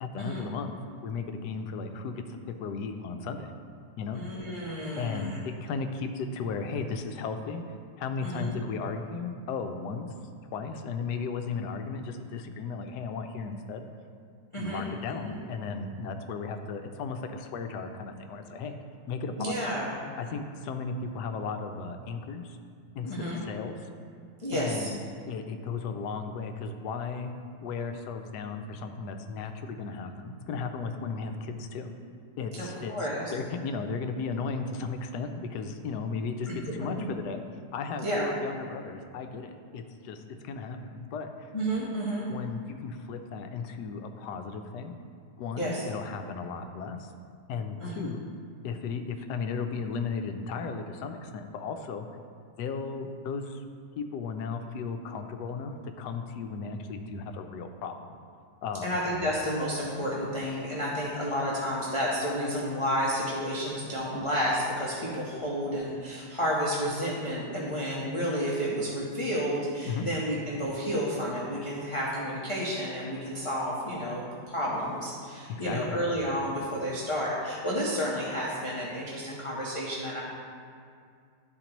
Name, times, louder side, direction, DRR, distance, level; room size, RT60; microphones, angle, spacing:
voice 1, 0.0-0.7 1.0-2.2 2.6-3.5 4.0-4.2 5.0-7.6 8.0-10.1 10.5-13.9 14.6-18.7 19.1-19.5 20.2-22.6 23.0-23.8 24.5-25.0 25.3-27.3 27.6-31.9 32.4-32.9 33.3-37.4 37.7-41.5 42.2-44.9 45.4-47.1 47.5-48.2 48.6-52.1 52.6-53.6 54.0-58.2 58.6-59.0 69.9-70.1 75.5-76.0, left 4 dB, 75° left, 6 dB, 1.2 m, -35 dB
voice 2, 4.1-5.4 8.2-8.5 14.5-15.3 19.4-19.9 23.0-23.4 24.4-24.9 32.5-33.3 37.0-37.1 38.0-38.2 41.5-42.3 45.6-45.8 47.8-48.1 58.8-80.2, equal, 25° left, -7 dB, 0.7 m, -31 dB
12.0 x 4.3 x 3.0 m, 2.3 s
omnidirectional pair, 1.8 m